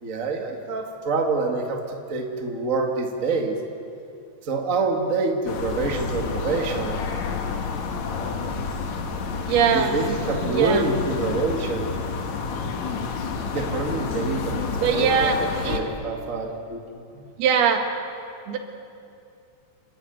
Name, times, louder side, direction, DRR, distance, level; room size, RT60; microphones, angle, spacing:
voice 1, 0.0-3.6 4.4-7.0 9.7-11.9 13.5-16.8 17.1-17.3, right 3 dB, 40° right, 2 dB, 1.2 m, -26 dB
sound 1, 5.5-15.8, left 5 dB, 60° left, 2.3 m, -29 dB
voice 2, 9.5-10.0 10.5-10.9 14.8-15.9 17.4-17.9 18.5-18.6, right 7 dB, 85° right, 4 dB, 3.6 m, -21 dB
29.0 x 11.5 x 9.2 m, 2.5 s
omnidirectional pair, 4.4 m